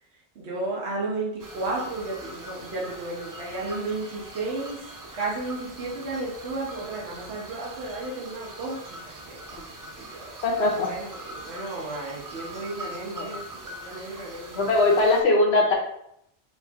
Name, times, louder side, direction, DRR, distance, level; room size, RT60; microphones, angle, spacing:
voice 1, 0.3-10.4 10.8-14.7, right 2 dB, 80° right, -3 dB, 1.2 m, -33 dB
sound 1, 1.4-15.2, right 1 dB, 30° right, 0.3 m, -42 dB
voice 2, 10.4-10.9 13.1-13.3 14.5-15.7, left 2 dB, 85° left, 0 dB, 1.2 m, -20 dB
4.4 x 3.0 x 2.8 m, 0.74 s
omnidirectional pair, 1.1 m